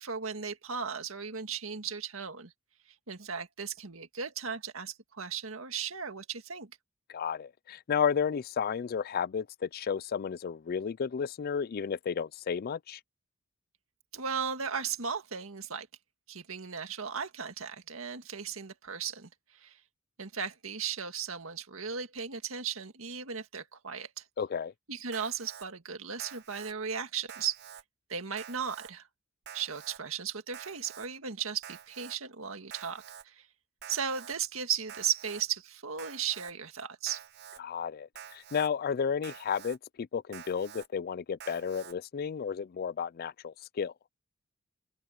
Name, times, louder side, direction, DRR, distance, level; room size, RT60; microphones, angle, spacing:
voice 1, 0.0-2.5 3.1-6.7 14.1-15.9 16.3-19.8 20.2-24.2 24.9-27.6 28.1-29.1 29.5-33.5 33.9-37.2, right 7 dB, 75° right, 1.9 m, -36 dB
voice 2, 7.1-13.0 24.4-24.7 37.6-43.9, left 7 dB, 45° left, 0.4 m, -32 dB
Alarm, 25.1-25.7 26.2-26.7 27.3-27.8 28.4-28.9 29.5-30.0 30.5-31.1 31.6-32.2 32.7-33.2 33.8-34.4 34.9-35.4 36.0-36.5 37.1-37.6 38.2-38.7 39.2-39.8 40.3-40.9 41.4-41.9, right 8 dB, 55° right, 0.8 m, -48 dB
open air
head